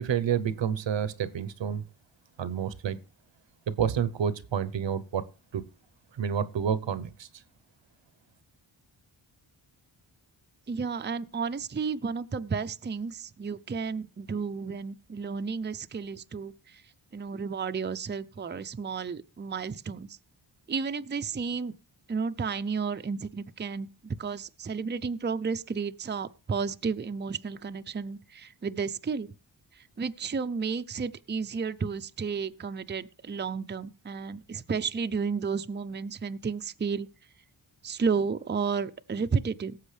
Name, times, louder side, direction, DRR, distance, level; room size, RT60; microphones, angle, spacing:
voice 1, 0.0-1.8 2.4-3.0 3.7-5.2 5.5-5.6 6.1-7.3, right 8 dB, 70° right, 0.9 m, -29 dB
voice 2, 10.7-16.8 17.1-20.2 20.7-21.7 22.1-29.3 29.8-37.1 37.8-39.8, right 5 dB, 25° right, 0.6 m, -32 dB
17.5 x 7.5 x 3.3 m
cardioid pair, 65°, 46 cm